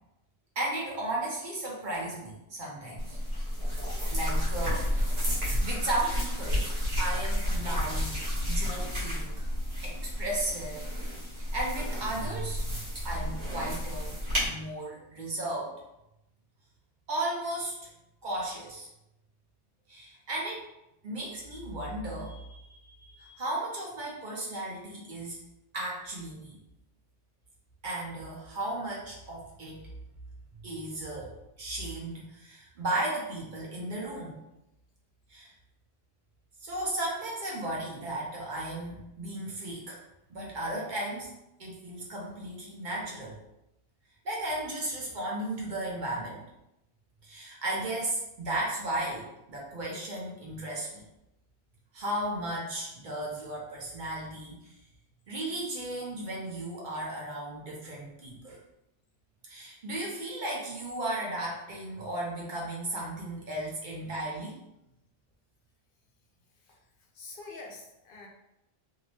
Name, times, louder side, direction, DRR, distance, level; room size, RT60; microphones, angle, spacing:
voice 1, 0.6-3.2 4.1-5.3 5.6-6.7 7.0-9.5 9.8-15.7 17.1-17.7 18.2-18.9 19.9-20.7 21.0-25.4 25.7-26.6 27.8-29.9 30.6-31.3 31.6-34.4 35.3-35.5 36.6-40.0 40.3-41.3 41.6-43.4 44.2-46.4 47.2-51.0 51.9-54.7 55.3-58.6 59.4-64.6, right 1 dB, 55° right, -4 dB, 0.7 m, -35 dB
sound 1, 3.0-14.5, equal, 70° right, 1.2 m, -31 dB
voice 2, 66.5-68.3, left 3 dB, 60° left, 0 dB, 0.7 m, -47 dB
2.7 x 2.0 x 2.8 m, 0.88 s
omnidirectional pair, 1.1 m